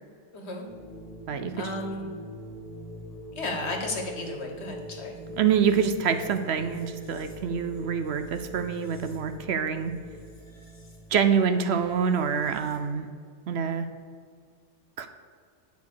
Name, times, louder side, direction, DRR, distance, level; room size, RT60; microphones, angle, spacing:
voice 1, 0.3-0.7 1.6-2.1 3.3-5.1, left 2 dB, 65° left, 3 dB, 1.6 m, -33 dB
sound 1, 0.6-12.9, equal, 35° left, 1.7 m, -43 dB
voice 2, 1.3-1.7 5.4-9.9 11.1-13.1 13.5-13.9 15.0-15.1, right 7 dB, 65° right, 9 dB, 0.9 m, -26 dB
9.0 x 5.4 x 6.5 m, 2.1 s
omnidirectional pair, 1.2 m